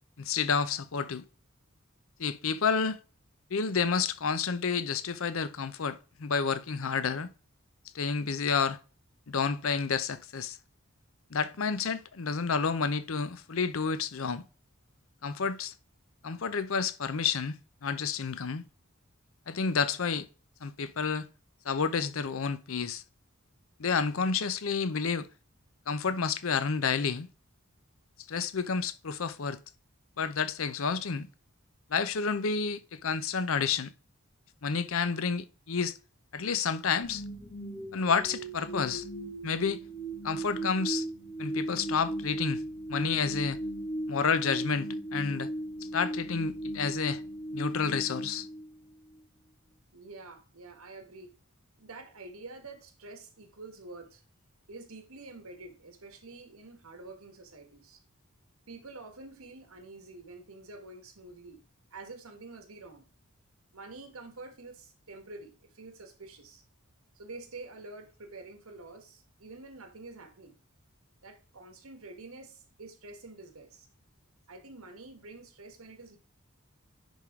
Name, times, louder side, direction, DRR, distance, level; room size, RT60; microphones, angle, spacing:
voice 1, 0.2-1.2 2.2-3.0 3.5-7.3 7.9-8.8 9.3-10.6 11.3-14.4 15.2-15.7 16.2-18.6 19.5-20.3 20.6-21.3 21.6-23.0 23.8-25.3 25.9-27.3 28.3-29.6 30.2-31.3 31.9-33.9 34.6-35.9 36.3-37.2 37.9-39.0 39.4-39.8 40.2-41.1 41.4-42.6 42.9-43.6 44.1-45.5 45.9-47.2 47.5-48.5, left 5 dB, 70° left, 0.6 m, -30 dB
sound 1, 37.0-49.2, right 1 dB, 35° left, 1.7 m, -37 dB
voice 2, 49.9-51.3 51.8-54.2 54.7-58.0 58.7-61.6 61.9-63.1 63.7-66.6 67.1-70.6 71.2-73.9 74.5-76.2, right 3 dB, 85° right, 1.5 m, -47 dB
10.5 x 3.7 x 3.6 m
head